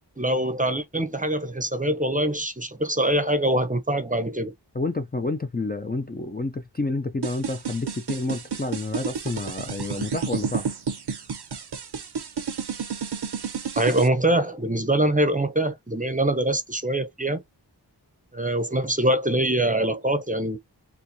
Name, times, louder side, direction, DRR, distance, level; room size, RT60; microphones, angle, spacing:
voice 1, 0.2-4.5 13.8-17.4 18.3-20.6, right 1 dB, 20° right, 0.7 m, -24 dB
voice 2, 4.7-10.7, left 3 dB, 25° left, 0.5 m, -29 dB
sound 1, 7.2-14.1, right 6 dB, 65° right, 0.7 m, -30 dB
4.4 x 2.3 x 2.6 m
wide cardioid pair, 45°, 42 cm